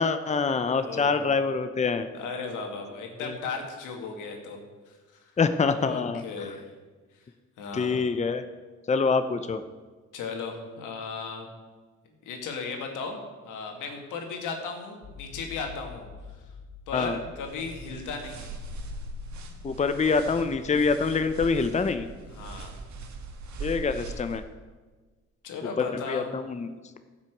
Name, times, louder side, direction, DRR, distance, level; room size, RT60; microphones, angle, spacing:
voice 1, 0.0-2.1 3.2-3.3 5.4-6.5 7.7-8.4 8.9-9.6 16.9-17.2 19.6-22.1 23.6-24.4 25.8-26.7, left 4 dB, 25° left, 10 dB, 0.7 m, -25 dB
voice 2, 0.6-1.4 2.1-5.0 5.7-6.6 7.6-8.1 10.1-11.5 12.1-16.1 16.3-16.5 16.9-18.5 22.3-22.8 25.4-26.3, left 4 dB, 90° left, 3 dB, 2.1 m, -36 dB
sound 1, 15.0-19.7, left 6 dB, 65° left, 1.7 m, -47 dB
sound 2, 17.4-24.4, right 2 dB, 65° right, 1.7 m, -40 dB
13.0 x 6.2 x 7.9 m, 1.4 s
cardioid pair, 90°, 30 cm